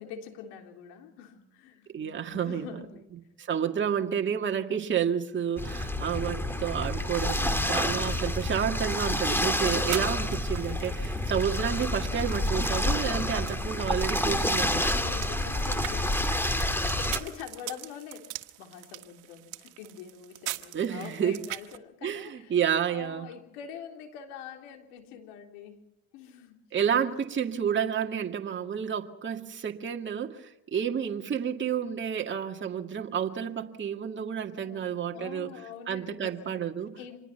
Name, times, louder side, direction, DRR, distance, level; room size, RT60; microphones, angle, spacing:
voice 1, 0.0-3.1 14.8-22.6 22.9-25.8 26.1-26.6 34.6-37.2, left 8 dB, 80° left, 4 dB, 3.6 m, -45 dB
voice 2, 1.9-2.7 3.4-14.9 20.7-21.4 22.0-23.3 26.7-35.5 35.9-36.9, right 8 dB, 35° right, 3 dB, 2.0 m, -30 dB
sound 1, 5.6-17.2, left 1 dB, 5° left, 2.4 m, -28 dB
sound 2, 7.9-21.8, right 18 dB, 75° right, 1.5 m, -43 dB
26.5 x 19.5 x 5.8 m, 0.88 s
supercardioid pair, 75°, 32 cm